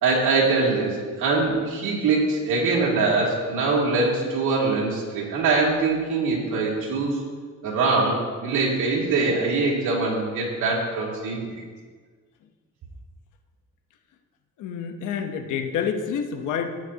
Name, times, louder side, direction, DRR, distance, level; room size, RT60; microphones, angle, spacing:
voice 1, 0.0-7.2 7.6-11.5, right 3 dB, 85° right, -3 dB, 2.8 m, -23 dB
voice 2, 14.6-16.7, left 7 dB, 85° left, 6 dB, 1.1 m, -28 dB
14.5 x 9.7 x 2.9 m, 1.5 s
cardioid pair, 90°, 30 cm